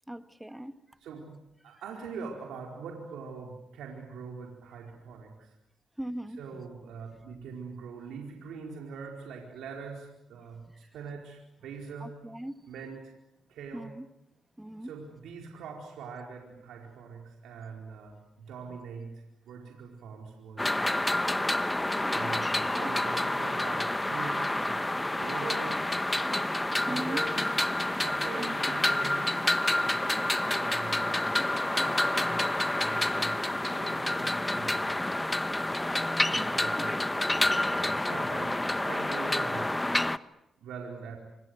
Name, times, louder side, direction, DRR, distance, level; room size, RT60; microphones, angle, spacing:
voice 1, 0.1-0.7 6.0-6.4 12.0-12.6 13.7-14.0 14.6-14.9 22.0-22.3 22.7-22.9 26.9-27.2 28.4-28.6 36.4-36.9, right 1 dB, 10° right, 9 dB, 2.1 m, -39 dB
voice 2, 1.0-1.4 1.6-5.6 6.4-12.2 12.7-13.1 13.5-13.9 14.8-21.0 22.1-25.9 26.7-27.4 28.0-31.3 31.7-35.1 36.3-37.0 37.8-39.8 40.6-41.2, right 5 dB, 85° right, 1 dB, 4.5 m, -43 dB
sound 1, 20.6-40.2, left 1 dB, 15° left, 1.1 m, -28 dB
26.5 x 25.5 x 8.0 m, 0.88 s
supercardioid pair, 60°, 0 cm